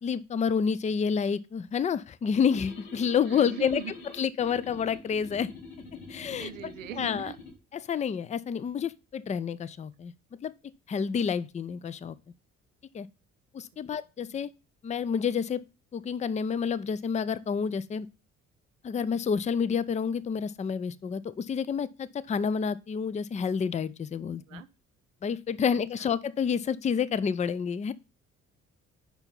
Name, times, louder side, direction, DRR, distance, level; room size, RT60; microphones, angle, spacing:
voice 1, 0.0-3.8 4.2-5.5 6.1-6.5 7.0-7.3 7.9-10.1 10.4-10.5 10.9-12.2 12.9-13.1 13.5-14.5 14.8-15.6 15.9-18.1 18.8-24.6 25.2-27.9, left 6 dB, 20° left, 0.4 m, -29 dB
sound 1, 2.4-7.6, left 3 dB, 75° left, 1.6 m, -46 dB
voice 2, 3.1-3.9 6.3-7.4 13.7-13.9 14.3-14.4 24.5-24.7 25.7-26.1, right 12 dB, 85° right, 0.5 m, -42 dB
5.7 x 4.5 x 5.3 m
figure-of-eight pair, 45°, 39 cm